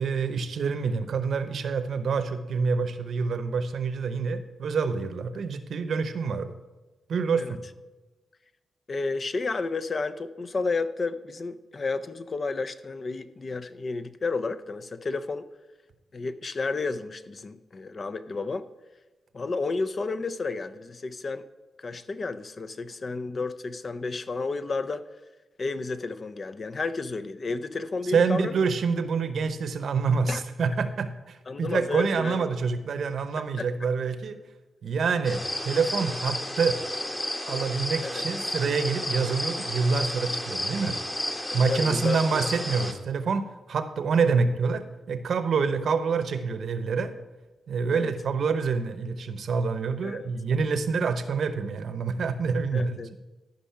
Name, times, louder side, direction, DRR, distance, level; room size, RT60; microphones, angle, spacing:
voice 1, 0.0-6.5 7.1-7.6 28.1-34.4 34.8-36.8 37.5-41.0 41.5-47.1 47.7-53.0, right 5 dB, 70° right, 11 dB, 0.8 m, -27 dB
voice 2, 8.9-15.4 16.1-18.7 19.3-21.4 21.8-25.1 25.6-28.6 30.3-30.4 31.5-32.4 33.6-33.7 38.0-38.2 41.5-42.5 47.9-48.1 50.0-50.3 52.7-53.1, left 3 dB, 40° left, 13 dB, 0.5 m, -31 dB
sound 1, 35.2-42.9, left 1 dB, 15° left, 1.2 m, -32 dB
13.5 x 5.3 x 5.7 m, 1.2 s
cardioid pair, 85°, 0 cm